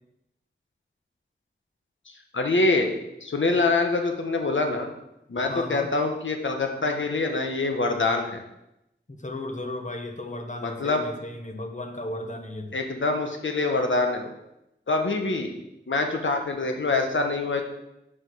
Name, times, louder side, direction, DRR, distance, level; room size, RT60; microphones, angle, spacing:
voice 1, 2.3-2.9 3.2-4.9 5.3-8.4 10.6-11.0 12.7-14.3 14.9-15.5 15.9-17.6, left 3 dB, 80° left, 4 dB, 1.1 m, -25 dB
voice 2, 5.5-5.9 9.2-12.7, left 1 dB, 40° left, 5 dB, 1.1 m, -35 dB
6.1 x 5.3 x 6.2 m, 0.87 s
wide cardioid pair, 60°, 20 cm